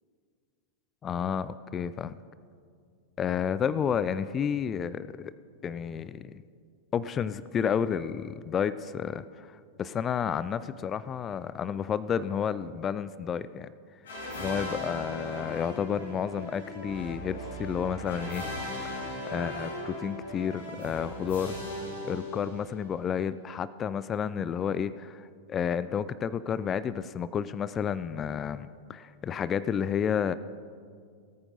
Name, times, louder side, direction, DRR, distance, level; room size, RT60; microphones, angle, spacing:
voice 1, 1.0-2.2 3.2-5.3 5.6-6.4 6.9-13.7 14.4-18.4 18.8-21.6 22.0-30.3, left 7 dB, 25° left, 16 dB, 0.3 m, -31 dB
sound 1, 14.1-22.9, left 1 dB, 65° left, 2.6 m, -38 dB
18.0 x 9.0 x 4.0 m, 2.2 s
figure-of-eight pair, 90°, 0 cm